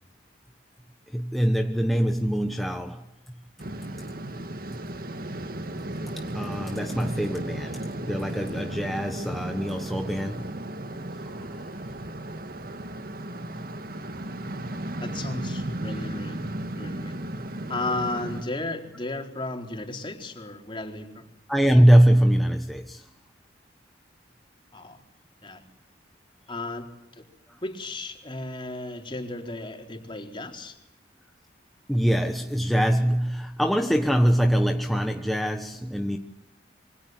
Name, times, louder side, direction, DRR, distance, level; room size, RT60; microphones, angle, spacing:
voice 1, 1.1-3.0 6.3-10.5 11.5-11.7 14.5-14.6 21.5-23.1 27.5-27.6 31.9-36.2, equal, ahead, 1.3 m, -23 dB
sound 1, 3.6-18.4, right 1 dB, 50° right, 1.9 m, -35 dB
voice 2, 15.0-17.2 17.7-21.3 24.7-25.0 25.4-25.6 26.5-26.9 27.1-27.2 27.6-30.8, left 2 dB, 25° left, 4.2 m, -34 dB
27.5 x 25.0 x 8.0 m
head